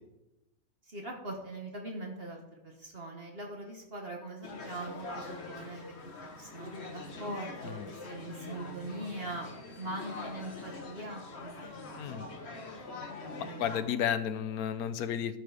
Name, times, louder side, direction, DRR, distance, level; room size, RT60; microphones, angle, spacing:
voice 1, 0.9-5.8 6.3-9.5 9.8-12.3 13.4-13.6, right 2 dB, 45° right, 1 dB, 1.5 m, -42 dB
sound 1, 4.4-13.8, left 3 dB, 45° left, 1.6 m, -44 dB
voice 2, 13.6-15.4, left 9 dB, 80° left, 12 dB, 1.3 m, -32 dB
10.5 x 9.1 x 4.9 m, 0.96 s
omnidirectional pair, 1.6 m